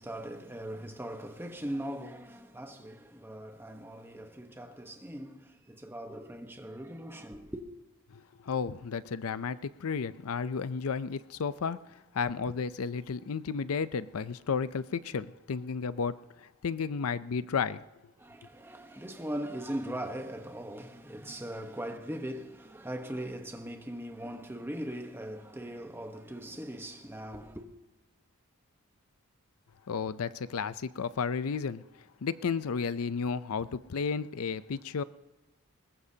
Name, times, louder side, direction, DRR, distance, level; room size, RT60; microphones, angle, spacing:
voice 1, 0.0-7.6 18.2-27.7, right 1 dB, 10° right, 1.0 m, -40 dB
voice 2, 8.1-11.8 12.1-16.1 16.6-17.8 29.9-31.8 32.2-35.0, left 5 dB, 70° left, 0.5 m, -32 dB
21.0 x 20.0 x 2.8 m
head